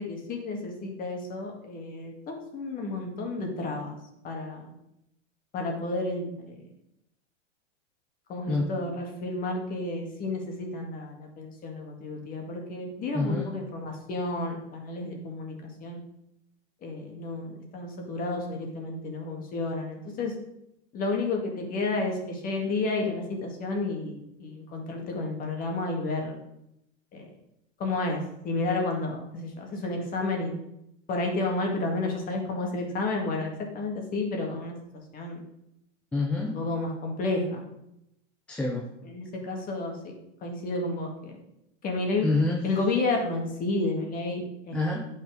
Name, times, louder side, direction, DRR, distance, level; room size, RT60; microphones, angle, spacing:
voice 1, 0.0-4.0 4.2-4.7 5.5-6.6 8.3-16.0 16.8-20.3 20.9-26.4 27.1-27.3 27.8-30.5 31.1-34.8 35.1-35.4 36.4-37.7 39.0-40.0 40.4-41.4 41.8-42.3 42.6-44.9, left 2 dB, 25° left, 1 dB, 2.0 m, -31 dB
voice 2, 13.1-13.5 36.1-36.6 38.5-38.8 42.2-42.6 44.7-45.1, left 2 dB, 5° left, -1 dB, 0.4 m, -27 dB
10.0 x 6.1 x 5.0 m, 0.83 s
supercardioid pair, 155°, 36 cm